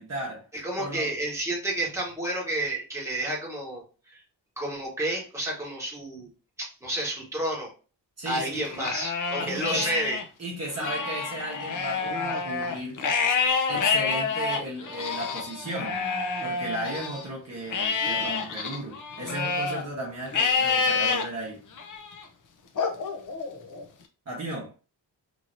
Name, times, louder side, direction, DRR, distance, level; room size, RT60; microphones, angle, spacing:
voice 1, 0.0-0.5 0.8-1.1 8.2-8.7 9.4-9.9 10.4-13.0 13.7-16.0 16.4-21.6 24.3-24.7, right 1 dB, 35° right, 1.0 m, -35 dB
voice 2, 0.6-4.2 4.6-6.3 6.6-7.7 8.2-10.2, right 1 dB, 5° right, 1.1 m, -30 dB
Livestock farm animals working animals, 8.6-10.2 10.7-17.2 17.7-19.8 20.3-21.2 21.8-22.2 22.8-23.8, left 5 dB, 45° left, 0.6 m, -28 dB
3.1 x 2.7 x 2.6 m
wide cardioid pair, 155°, 44 cm